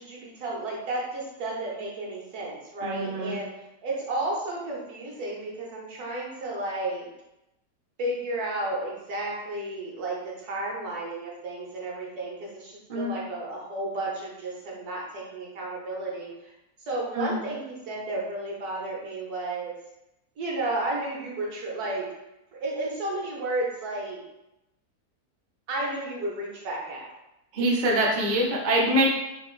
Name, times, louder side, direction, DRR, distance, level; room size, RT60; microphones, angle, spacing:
voice 1, 0.0-3.5 3.8-7.1 8.0-16.5 16.8-19.8 20.4-22.1 22.5-24.2 25.7-27.1, right 2 dB, 70° right, -3 dB, 1.4 m, -32 dB
voice 2, 2.8-3.4 12.9-13.1 17.1-17.4 27.5-29.1, right 1 dB, 55° right, -3 dB, 0.5 m, -24 dB
3.9 x 2.4 x 3.1 m, 0.90 s
omnidirectional pair, 1.7 m